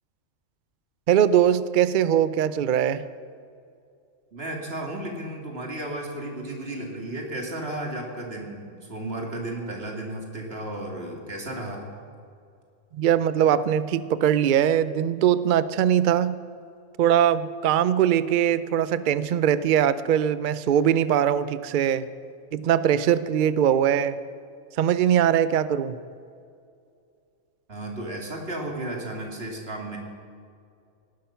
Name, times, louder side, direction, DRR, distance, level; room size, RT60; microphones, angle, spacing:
voice 1, 1.1-3.1 12.9-16.4 17.0-22.1 22.5-24.2 24.8-26.0, right 9 dB, 90° right, 15 dB, 0.4 m, -21 dB
voice 2, 4.3-11.9 27.7-30.0, right 1 dB, 45° right, 1 dB, 2.5 m, -34 dB
18.0 x 11.5 x 5.8 m, 2.4 s
omnidirectional pair, 1.5 m